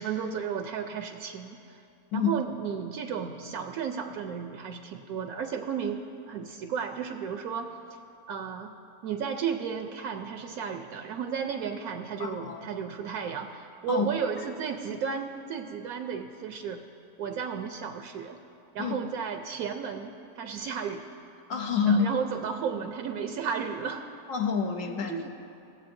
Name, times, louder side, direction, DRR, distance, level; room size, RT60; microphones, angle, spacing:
voice 1, 0.0-1.8 2.1-7.7 8.3-8.7 9.0-16.8 17.2-18.4 18.7-21.0 21.9-24.0 24.9-25.3, right 7 dB, 75° right, 4 dB, 1.0 m, -33 dB
voice 2, 12.2-12.6 13.9-14.1 18.8-18.9 21.5-22.1 24.3-25.3, left 6 dB, 65° left, 4 dB, 1.0 m, -27 dB
18.5 x 7.7 x 2.6 m, 2.7 s
omnidirectional pair, 1.6 m